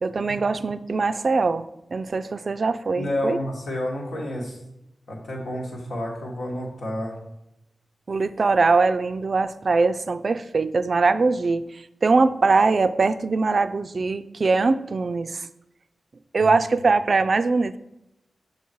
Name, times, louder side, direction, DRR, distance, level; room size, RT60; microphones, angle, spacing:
voice 1, 0.0-1.7 1.9-3.4 8.1-11.6 12.0-15.4 16.3-17.8, right 4 dB, 55° right, 13 dB, 0.3 m, -22 dB
voice 2, 2.9-4.6 5.1-7.1 16.4-16.5, left 1 dB, 85° left, -2 dB, 1.6 m, -30 dB
7.2 x 3.8 x 4.6 m, 0.85 s
wide cardioid pair, 80°, 0 cm